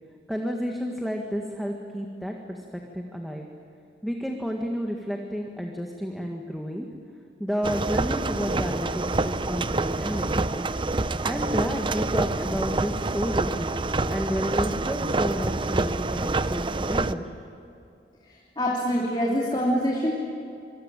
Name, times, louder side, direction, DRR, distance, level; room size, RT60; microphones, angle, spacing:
voice 1, 0.3-2.6 2.9-3.5 4.0-6.9 7.4-10.8 11.2-13.7 14.1-17.2, equal, ahead, 1 dB, 1.8 m, -31 dB
sound 1, 7.6-17.1, right 2 dB, 30° right, 0.7 m, -27 dB
voice 2, 18.3-20.1, equal, 25° left, -3 dB, 3.2 m, -25 dB
26.0 x 24.5 x 9.2 m, 2.5 s
head